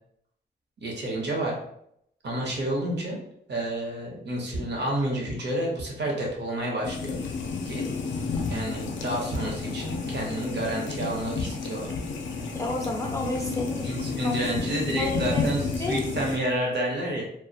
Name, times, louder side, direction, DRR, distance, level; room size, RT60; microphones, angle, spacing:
voice 1, 0.8-1.5 2.2-3.2 3.5-7.2 7.7-7.8 8.5-11.9 13.8-17.2, right 1 dB, 65° right, -1 dB, 0.7 m, -30 dB
sound 1, 6.8-16.4, left 4 dB, 85° left, 0.4 m, -31 dB
voice 2, 12.5-13.9 14.2-14.4 15.0-15.5 15.8-16.0, left 2 dB, 15° left, -1 dB, 0.3 m, -31 dB
2.3 x 2.0 x 2.6 m, 0.72 s
wide cardioid pair, 125°, 19 cm